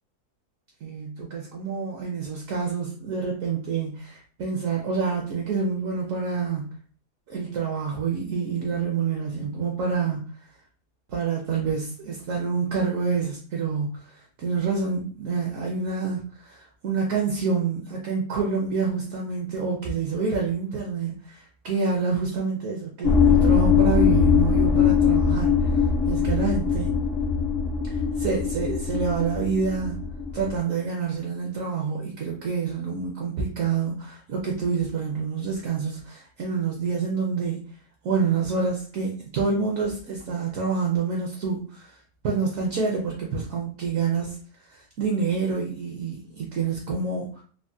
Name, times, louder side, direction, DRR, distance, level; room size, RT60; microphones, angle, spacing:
voice 1, 0.8-6.7 7.3-10.2 11.1-27.0 27.8-30.0 30.3-37.6 38.0-42.0 42.2-44.4 44.6-47.4, right 5 dB, 65° right, -1 dB, 0.9 m, -27 dB
sound 1, 23.0-30.6, left 6 dB, 55° left, 0.7 m, -21 dB
3.4 x 2.1 x 2.6 m, 0.43 s
omnidirectional pair, 1.7 m